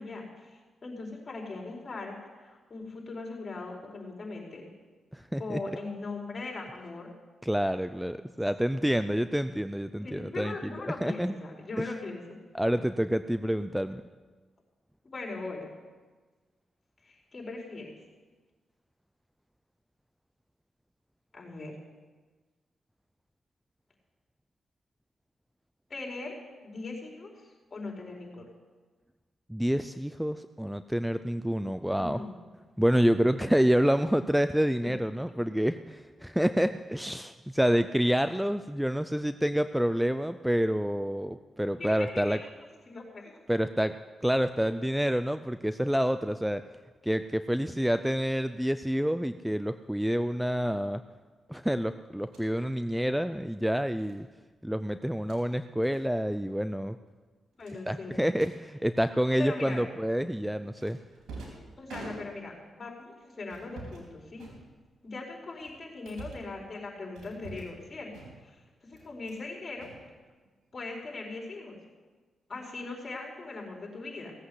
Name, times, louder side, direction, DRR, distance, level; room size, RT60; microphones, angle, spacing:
voice 1, 0.0-2.1 2.4-4.7 5.4-7.1 10.0-12.4 15.0-15.6 17.0-17.9 21.3-21.7 25.9-26.3 26.6-28.5 32.0-32.4 34.8-34.9 41.8-42.4 42.9-43.4 57.6-58.3 59.4-59.9 61.8-64.4 65.0-68.1 68.4-69.9 70.7-71.8 72.5-74.3, left 3 dB, 40° left, -1 dB, 4.6 m, -40 dB
voice 2, 5.1-5.6 7.4-11.3 12.5-14.0 29.5-32.2 32.8-42.4 43.5-43.9 44.2-46.6 47.0-51.0 51.5-54.3 54.6-57.0 57.9-61.0, equal, 5° right, 11 dB, 0.5 m, -28 dB
sound 1, 52.2-52.5 54.0-54.2 55.1-55.4 55.8-56.0 56.3-56.5 56.8-56.9 57.6-58.5 59.7-60.1 60.8-62.6 63.4-64.1 64.4-65.1 65.6-66.5 67.1-67.8 68.1-68.6 68.9-69.4 69.7-70.6, right 3 dB, 90° right, 4.1 m, -47 dB
17.0 x 8.4 x 7.9 m, 1.4 s
cardioid pair, 70°, 0 cm